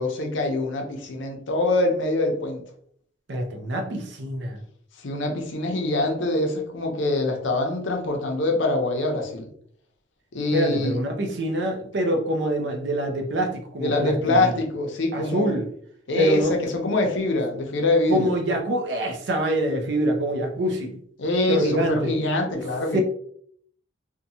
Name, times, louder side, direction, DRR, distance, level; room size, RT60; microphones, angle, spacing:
voice 1, 0.0-2.6 5.0-9.5 10.3-11.0 13.8-15.5 16.1-18.3 21.2-23.0, left 2 dB, 85° left, 2 dB, 0.6 m, -24 dB
voice 2, 3.3-4.6 10.5-14.6 15.1-15.7 16.2-16.5 18.1-21.0 21.5-22.1 22.9-23.0, equal, 70° right, 4 dB, 0.6 m, -25 dB
2.8 x 2.2 x 2.7 m, 0.64 s
head